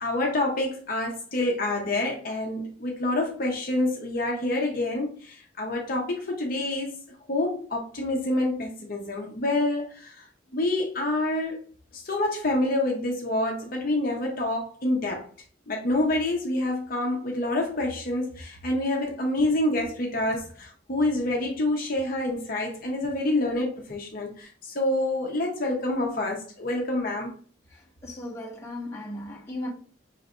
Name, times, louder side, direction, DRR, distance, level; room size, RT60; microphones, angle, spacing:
voice 1, 0.0-6.9 7.3-10.2 10.5-11.6 11.9-15.3 15.7-27.3, left 1 dB, 50° left, 0.9 m, -27 dB
voice 2, 27.7-29.7, left 1 dB, 15° left, 1.2 m, -37 dB
5.7 x 3.2 x 2.5 m
head